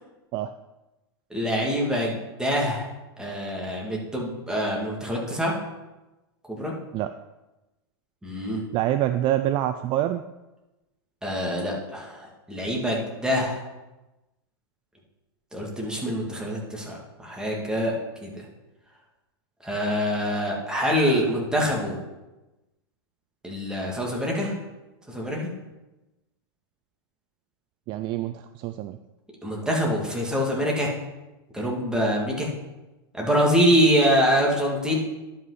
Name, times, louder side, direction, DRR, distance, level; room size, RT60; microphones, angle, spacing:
voice 1, 1.3-2.9 3.2-5.5 6.5-6.7 8.2-8.6 11.2-13.6 15.5-17.0 17.2-17.9 18.2-18.4 19.6-22.0 23.4-24.5 25.1-25.5 29.4-30.9 31.5-32.5 33.1-35.0, equal, 5° right, -2 dB, 2.4 m, -25 dB
voice 2, 8.7-10.2 27.9-29.0, right 13 dB, 40° right, 11 dB, 0.4 m, -26 dB
11.0 x 5.5 x 4.1 m, 1.0 s
hypercardioid pair, 110°, 13 cm